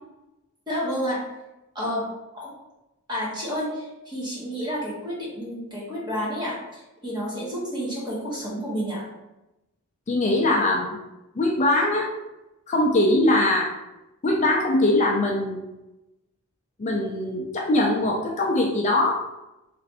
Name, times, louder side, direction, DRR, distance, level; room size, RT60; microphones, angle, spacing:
voice 1, 0.7-1.3 1.7-2.1 2.3-2.5 3.1-9.0, equal, 20° right, -5 dB, 1.2 m, -30 dB
voice 2, 10.1-11.0 11.4-12.1 12.7-13.7 14.2-15.6 16.8-19.2, left 1 dB, 30° left, -1 dB, 0.4 m, -22 dB
3.1 x 2.6 x 4.1 m, 0.98 s
head